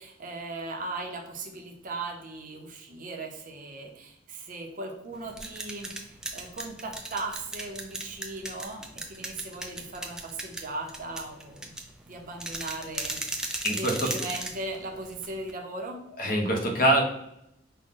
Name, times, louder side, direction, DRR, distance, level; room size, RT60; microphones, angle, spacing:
voice 1, 0.0-11.7 12.1-16.0, right 2 dB, 45° right, 2 dB, 0.7 m, -38 dB
sound 1, 5.1-15.5, right 2 dB, 5° right, 0.4 m, -37 dB
voice 2, 13.6-14.1 16.2-17.0, right 1 dB, 45° left, 2 dB, 0.8 m, -24 dB
5.1 x 2.2 x 3.7 m, 0.79 s
head